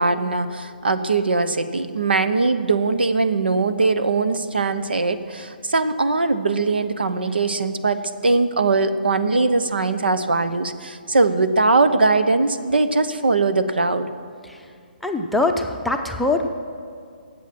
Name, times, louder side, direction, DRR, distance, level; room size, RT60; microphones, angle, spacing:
voice 1, 0.0-14.1, right 3 dB, 80° right, 11 dB, 0.9 m, -21 dB
voice 2, 15.0-16.5, left 2 dB, ahead, 2 dB, 0.7 m, -23 dB
18.5 x 7.8 x 6.1 m, 2.3 s
figure-of-eight pair, 135°, 5 cm